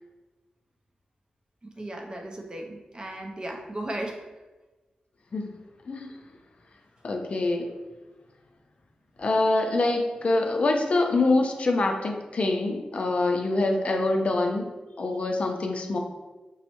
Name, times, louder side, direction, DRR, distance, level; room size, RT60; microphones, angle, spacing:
voice 1, 1.6-4.3, right 1 dB, 30° right, 1 dB, 0.5 m, -36 dB
voice 2, 7.0-7.7 9.2-14.7 15.0-16.0, left 2 dB, 50° left, 3 dB, 0.4 m, -25 dB
5.3 x 2.0 x 2.9 m, 1.2 s
wide cardioid pair, 105°, 3 cm